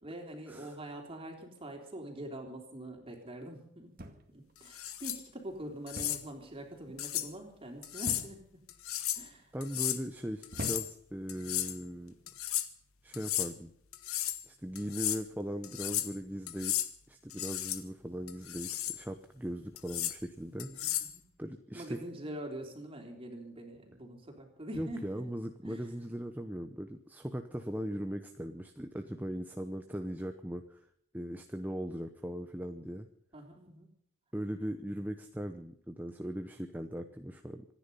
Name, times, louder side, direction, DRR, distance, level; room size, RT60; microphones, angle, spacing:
voice 1, 0.0-4.0 4.3-8.7 9.1-9.6 20.7-21.2 21.7-25.3 25.6-25.9 33.3-33.9, right 1 dB, 25° right, 2 dB, 3.5 m, -44 dB
sound 1, 4.0-4.5 5.9-6.3 6.6-7.0 8.0-8.6 9.3-9.7 10.5-11.2 12.1-12.4, equal, 40° right, 1.9 m, -43 dB
sound 2, 4.7-5.2 5.9-6.2 7.0-7.3 7.8-8.3 8.7-9.3 9.6-10.0 10.4-10.9 11.3-11.8 12.3-12.7 13.1-13.5 13.9-14.4 14.7-15.2 15.6-16.1 16.5-16.9 17.3-17.8 18.3-19.0 19.8-20.2 20.6-21.1, left 13 dB, 80° left, 1.3 m, -34 dB
voice 2, 9.5-12.1 13.0-13.7 14.5-16.8 17.1-21.0 21.4-22.0 24.7-30.8 31.1-33.1 34.3-37.7, equal, 10° right, 6 dB, 0.7 m, -39 dB
25.5 x 10.0 x 5.6 m, 0.69 s
head